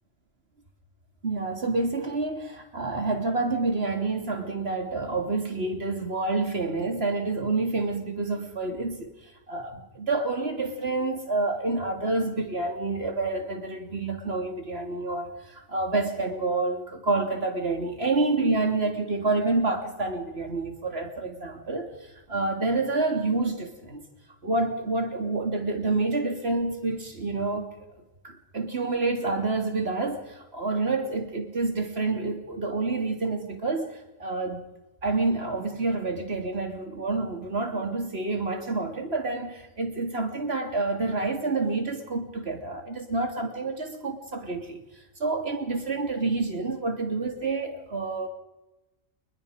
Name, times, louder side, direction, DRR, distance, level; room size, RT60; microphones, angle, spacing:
voice 1, 1.2-9.1 9.5-21.9 22.3-24.0 24.4-27.7 28.2-34.6 35.0-44.8 45.2-48.3, right 3 dB, 45° right, 4 dB, 3.4 m, -28 dB
29.0 x 21.0 x 5.2 m, 1.0 s
omnidirectional pair, 1.4 m